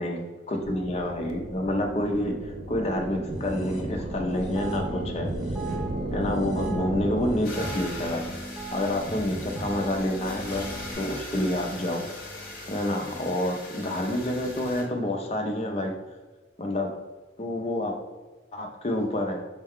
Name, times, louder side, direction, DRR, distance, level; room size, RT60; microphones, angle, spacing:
voice 1, 0.0-2.3 2.7-5.3 6.1-8.3 8.7-10.7 11.0-12.0 12.7-15.9 16.6-16.9 17.4-18.0 18.5-19.4, left 1 dB, 35° left, 2 dB, 0.5 m, -28 dB
sound 1, 0.6-7.4, right 1 dB, 60° right, 0.4 m, -34 dB
sound 2, 3.3-10.9, right 2 dB, ahead, 0.7 m, -37 dB
sound 3, 7.4-14.8, left 2 dB, 50° left, 0.9 m, -40 dB
5.5 x 2.2 x 3.5 m, 1.3 s
head